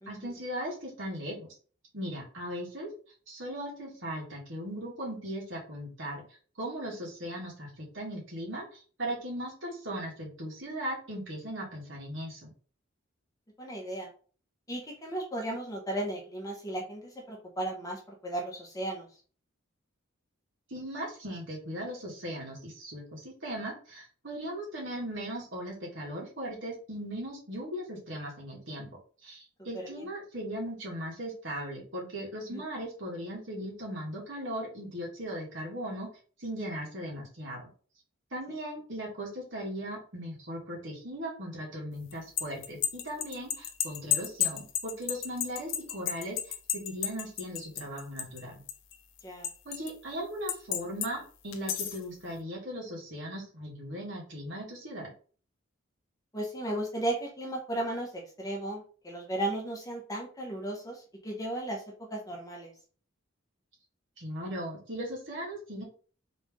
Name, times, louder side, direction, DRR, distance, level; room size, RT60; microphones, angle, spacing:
voice 1, 0.1-1.5 1.9-2.9 3.3-6.2 6.6-12.5 20.7-28.9 29.2-36.1 36.4-37.7 38.3-46.4 46.7-48.6 49.6-55.1 64.2-65.8, equal, 65° right, -3 dB, 2.2 m, -38 dB
voice 2, 13.6-14.1 14.7-19.1 29.7-30.0 32.5-32.6 49.2-49.5 56.3-61.8 62.1-62.7, right 1 dB, 15° left, 0 dB, 1.1 m, -35 dB
sound 1, 42.1-48.4 48.7-49.9 50.5-51.1 51.5-52.0, left 10 dB, 70° left, 0.6 m, -32 dB
3.8 x 3.5 x 3.7 m, 0.40 s
head